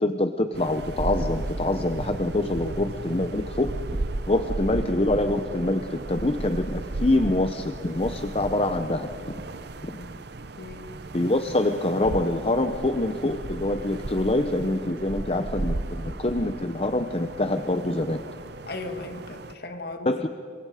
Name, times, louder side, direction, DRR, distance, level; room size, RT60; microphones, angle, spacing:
voice 1, 0.0-3.7 4.3-9.3 11.1-18.2 20.1-20.3, left 1 dB, 30° left, 8 dB, 0.8 m, -25 dB
sound 1, 0.5-19.5, right 2 dB, 55° right, 0.8 m, -35 dB
voice 2, 10.6-10.9 18.7-20.2, left 2 dB, 55° left, 5 dB, 2.1 m, -37 dB
28.0 x 24.5 x 5.0 m, 2.6 s
head